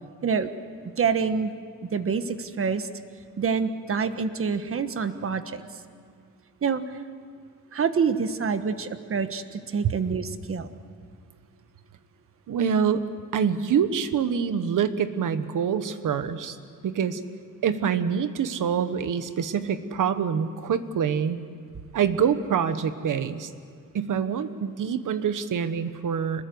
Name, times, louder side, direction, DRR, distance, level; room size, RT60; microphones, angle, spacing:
voice 1, 1.0-1.5 1.9-2.9 3.4-5.6 6.6-6.8 7.7-10.7, right 5 dB, 40° right, 10 dB, 1.3 m, -26 dB
voice 2, 12.5-13.0 13.3-16.6 16.8-17.2 17.6-21.4 21.9-23.5 23.9-26.4, right 7 dB, 65° right, 11 dB, 1.3 m, -25 dB
26.0 x 20.5 x 8.0 m, 2.2 s
wide cardioid pair, 135°, 33 cm